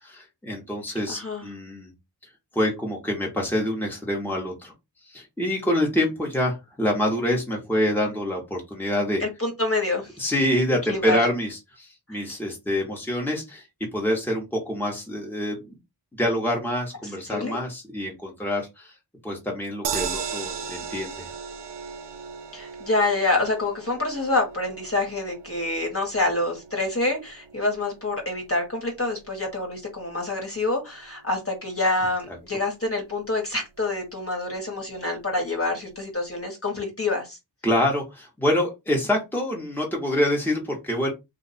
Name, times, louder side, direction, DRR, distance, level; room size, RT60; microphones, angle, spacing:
voice 1, 0.0-1.9 2.5-4.7 5.1-9.2 10.2-15.8 16.2-18.9 19.2-21.3 37.6-41.1, left 1 dB, 5° left, 1.3 m, -26 dB
voice 2, 1.1-1.4 9.2-10.1 10.9-11.2 12.1-12.2 17.3-17.6 22.5-37.4, left 2 dB, 30° left, 1.5 m, -27 dB
sound 1, 19.8-32.1 32.5-32.6 32.8-32.9, right 6 dB, 75° right, 0.6 m, -38 dB
2.6 x 2.5 x 4.2 m
wide cardioid pair, 65°, 42 cm